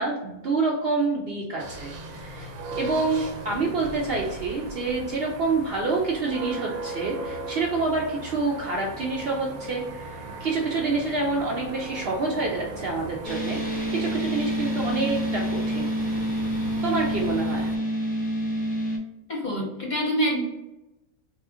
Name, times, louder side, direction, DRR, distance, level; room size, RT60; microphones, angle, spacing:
voice 1, 0.0-13.6 13.9-15.9 16.8-17.7, right 3 dB, 60° right, -1 dB, 0.6 m, -27 dB
sound 1, 1.6-17.8, right 2 dB, 90° right, 1.1 m, -38 dB
sound 2, 13.2-19.0, equal, 15° left, 0.3 m, -28 dB
voice 2, 19.3-20.4, equal, 45° left, -2 dB, 0.6 m, -26 dB
2.9 x 2.4 x 3.6 m, 0.96 s
omnidirectional pair, 1.4 m